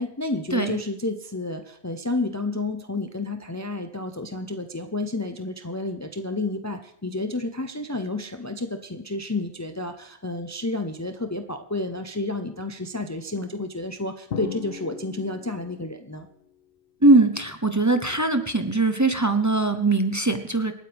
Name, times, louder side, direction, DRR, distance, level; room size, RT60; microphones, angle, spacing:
voice 1, 0.0-16.3, left 2 dB, 20° left, 7 dB, 0.7 m, -30 dB
Drum, 14.3-16.0, left 9 dB, 65° left, 0.8 m, -36 dB
voice 2, 17.0-20.7, right 2 dB, 20° right, 7 dB, 0.9 m, -21 dB
27.0 x 9.2 x 3.5 m, 0.72 s
omnidirectional pair, 1.1 m